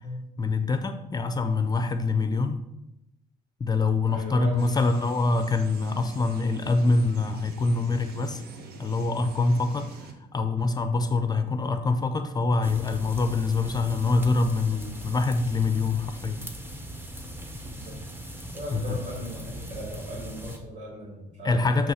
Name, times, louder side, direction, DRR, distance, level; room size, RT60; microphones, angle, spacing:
voice 1, 0.4-2.6 3.6-8.4 8.8-9.9 10.3-16.4 18.7-18.8 21.4-21.9, left 3 dB, 25° left, 9 dB, 0.5 m, -25 dB
voice 2, 4.1-4.7 11.1-11.2 17.6-18.0 18.5-21.9, equal, 45° right, -7 dB, 2.6 m, -38 dB
sound 1, 4.6-10.1, right 3 dB, 70° right, 1.0 m, -45 dB
sound 2, 12.6-20.6, equal, 15° right, 0.9 m, -40 dB
7.8 x 3.1 x 5.6 m, 0.88 s
cardioid pair, 110°, 17 cm